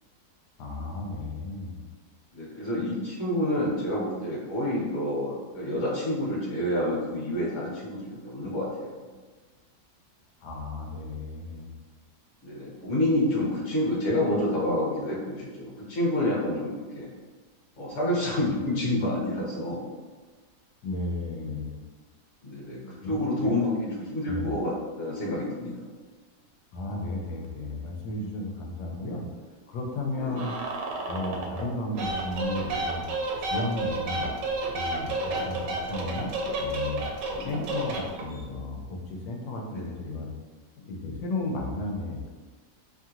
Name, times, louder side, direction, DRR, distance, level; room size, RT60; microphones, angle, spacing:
voice 1, 0.6-1.9 10.4-11.7 20.8-21.8 23.0-23.6 24.3-24.5 26.7-29.2 29.7-30.5 31.1-33.0 33.4-34.3 34.7-37.1 37.4-40.3 40.8-42.3, left 2 dB, 75° left, 1 dB, 1.1 m, -34 dB
voice 2, 2.3-9.1 12.4-17.1 17.8-19.9 22.4-24.7 25.0-25.7 30.1-30.4 35.3-35.6 37.4-37.7 39.7-39.9, left 1 dB, 50° left, -5 dB, 1.0 m, -28 dB
sound 1, 30.4-31.7 32.0-38.4, right 2 dB, 85° right, 1.2 m, -31 dB
3.0 x 2.7 x 2.4 m, 1.4 s
omnidirectional pair, 1.9 m